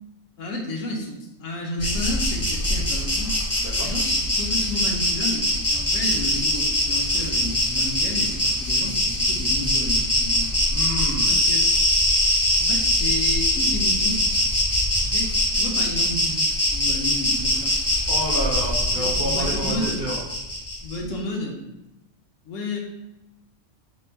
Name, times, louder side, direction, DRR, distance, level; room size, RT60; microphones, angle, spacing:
voice 1, 0.4-3.4 3.8-10.5 11.3-11.6 12.6-14.2 15.0-17.7 18.9-20.0 20.8-21.6 22.4-22.8, left 1 dB, 75° left, 0 dB, 1.1 m, -32 dB
Insect, 1.8-21.0, left 1 dB, 15° left, 0.6 m, -22 dB
voice 2, 3.6-3.9 10.7-11.4 18.1-20.2, right 1 dB, 60° right, -7 dB, 1.9 m, -29 dB
4.3 x 2.2 x 4.4 m, 0.93 s
omnidirectional pair, 1.4 m